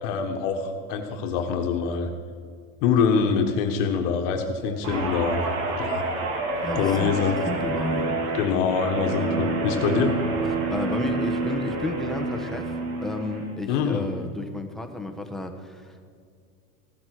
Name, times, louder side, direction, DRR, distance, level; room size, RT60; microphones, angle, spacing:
voice 1, 0.0-2.1 2.8-5.4 5.8-6.1 6.7-7.4 8.3-10.1 13.7-14.1, left 6 dB, 55° left, 5 dB, 1.4 m, -24 dB
Guitar, 4.8-13.4 13.8-14.1, right 3 dB, 65° right, 2.8 m, -28 dB
voice 2, 6.6-7.1 7.4-8.5 10.7-16.1, left 2 dB, ahead, 3 dB, 1.0 m, -32 dB
15.5 x 7.6 x 6.0 m, 2.2 s
supercardioid pair, 120°, 44 cm